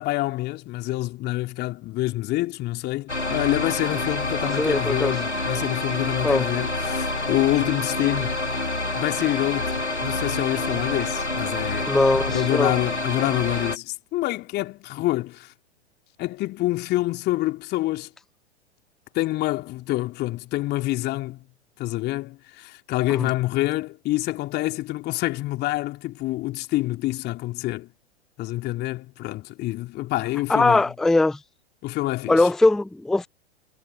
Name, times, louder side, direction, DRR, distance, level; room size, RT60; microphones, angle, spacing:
voice 1, 0.0-8.4 8.9-12.0 12.3-15.5 16.2-18.1 19.1-21.4 21.8-27.9 28.4-30.8 31.8-32.5, left 17 dB, 30° left, 3.0 m, -27 dB
sound 1, 3.1-13.8, left 2 dB, 90° left, 2.4 m, -27 dB
voice 2, 4.6-5.1 6.2-6.5 11.9-12.7 23.1-23.2 30.5-31.4 32.3-33.3, left 2 dB, ahead, 0.6 m, -20 dB
figure-of-eight pair, 105°, 34 cm